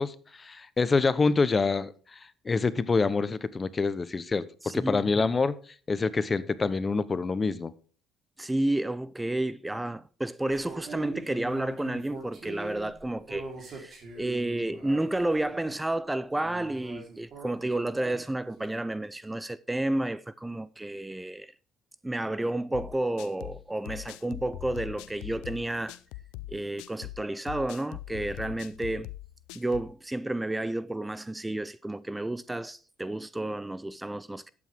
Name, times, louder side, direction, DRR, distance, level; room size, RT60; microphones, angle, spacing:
voice 1, 0.0-4.4 4.7-5.5 5.9-7.7, left 4 dB, 30° left, 0.8 m, -26 dB
voice 2, 4.6-5.3 8.4-21.5 22.0-26.0 26.5-29.1 29.6-34.5, right 1 dB, 10° right, 0.4 m, -31 dB
sound 1, 10.4-15.7 16.4-18.7, right 3 dB, 50° right, 3.9 m, -42 dB
sound 2, 22.7-29.9, left 17 dB, 90° left, 0.5 m, -42 dB
12.0 x 8.6 x 3.5 m
supercardioid pair, 85°, 0 cm